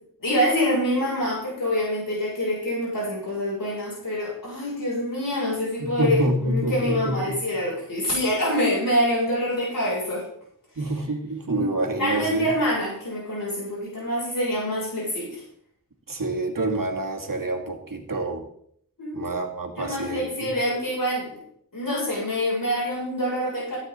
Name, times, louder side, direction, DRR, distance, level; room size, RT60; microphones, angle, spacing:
voice 1, 0.2-10.2 11.5-11.6 12.0-15.4 19.0-19.4 19.8-21.4 21.7-23.8, equal, 80° left, -7 dB, 6.7 m, -26 dB
voice 2, 5.8-7.4 10.8-12.5 16.1-18.4 19.1-20.5, right 2 dB, 80° right, 1 dB, 2.1 m, -27 dB
16.5 x 9.1 x 4.0 m, 0.68 s
wide cardioid pair, 50°, 33 cm